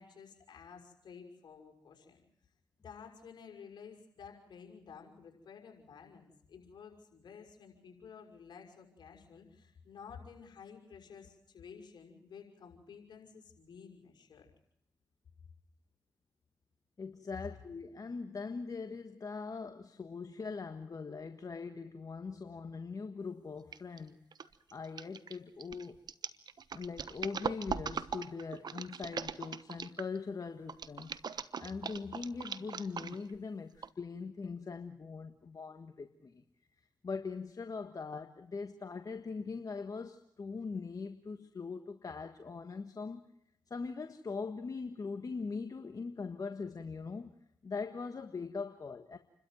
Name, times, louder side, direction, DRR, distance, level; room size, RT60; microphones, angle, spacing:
voice 1, 0.0-2.2 2.8-14.5, left 6 dB, 70° left, 2 dB, 5.9 m, -53 dB
voice 2, 17.0-24.2 24.7-26.0 26.7-31.1 31.6-36.4 37.0-43.2 43.7-47.3 47.6-49.2, left 4 dB, 50° left, 8 dB, 1.5 m, -41 dB
sound 1, 23.7-24.0 24.3-30.2 30.7-33.4 33.8-33.9, right 6 dB, 60° right, 1.1 m, -40 dB
29.0 x 13.0 x 9.3 m, 0.78 s
supercardioid pair, 45°, 8 cm